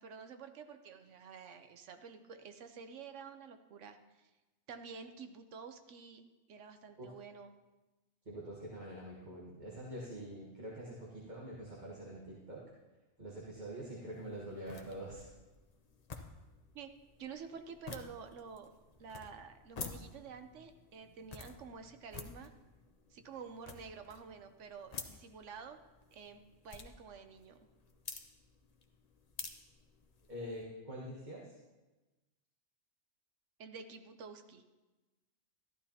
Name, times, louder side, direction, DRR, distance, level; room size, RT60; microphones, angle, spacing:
voice 1, 0.0-4.3 4.7-7.5 16.7-16.9 17.2-18.7 19.0-22.5 23.1-25.8 26.1-27.6 33.6-34.6, right 6 dB, 80° right, 8 dB, 1.1 m, -50 dB
voice 2, 8.2-12.6 13.2-15.3 30.3-31.6, right 1 dB, 40° right, -4 dB, 1.6 m, -45 dB
sound 1, 14.1-30.6, left 4 dB, 40° left, 0.7 m, -51 dB
13.5 x 12.0 x 2.8 m, 1.1 s
omnidirectional pair, 1.2 m